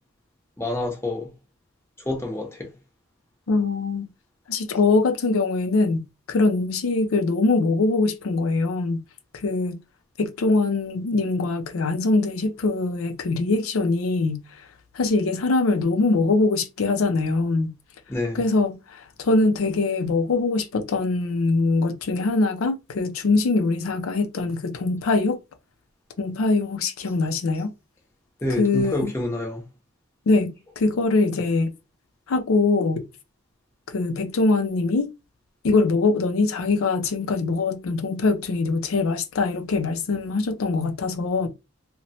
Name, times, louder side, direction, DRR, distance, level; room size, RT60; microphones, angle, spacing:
voice 1, 0.6-1.3 2.0-2.7 18.1-18.4 28.4-29.6, left 2 dB, 10° left, 0.7 m, -28 dB
voice 2, 3.5-4.1 4.5-9.0 9.4-9.8 10.2-14.4 14.9-17.7 18.3-25.4 26.2-27.7 28.6-29.1 30.3-31.7 32.3-33.0 33.9-35.1 35.6-41.5, left 3 dB, 80° left, 0.4 m, -23 dB
2.9 x 2.1 x 2.7 m
head